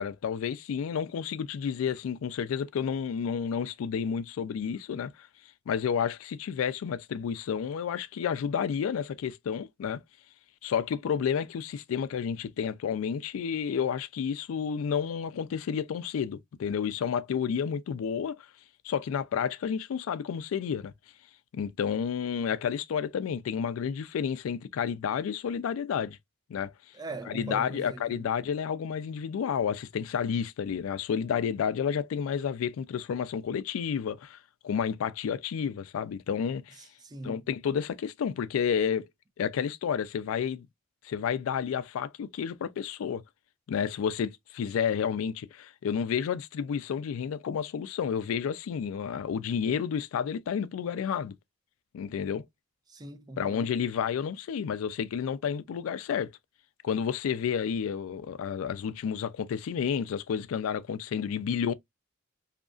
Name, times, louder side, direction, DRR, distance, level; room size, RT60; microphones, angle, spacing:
voice 1, 0.0-5.3 5.7-10.0 10.6-18.5 18.8-20.9 21.5-26.2 26.5-26.7 27.3-34.4 34.6-36.8 37.2-39.0 39.4-40.7 41.0-43.2 43.7-51.3 51.9-52.4 53.4-56.3 56.8-61.7, left 7 dB, 75° left, 0.3 m, -30 dB
voice 2, 26.9-28.3 36.8-37.5 52.9-53.7, right 2 dB, 20° right, 0.4 m, -41 dB
2.8 x 2.3 x 2.4 m
head